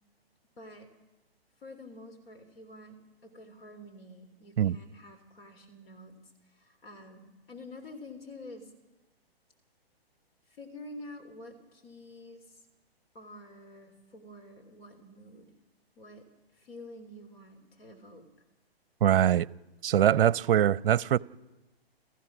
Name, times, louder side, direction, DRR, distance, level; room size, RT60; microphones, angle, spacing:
voice 1, 0.6-0.9 1.6-8.7 10.5-12.6 13.1-15.5 16.0-16.3 16.5-18.3 19.9-20.4, left 1 dB, 70° left, 3.6 m, -48 dB
voice 2, 19.0-19.5 19.8-21.2, right 10 dB, 60° right, 0.6 m, -23 dB
30.0 x 15.0 x 6.2 m
hypercardioid pair, 140°, 31 cm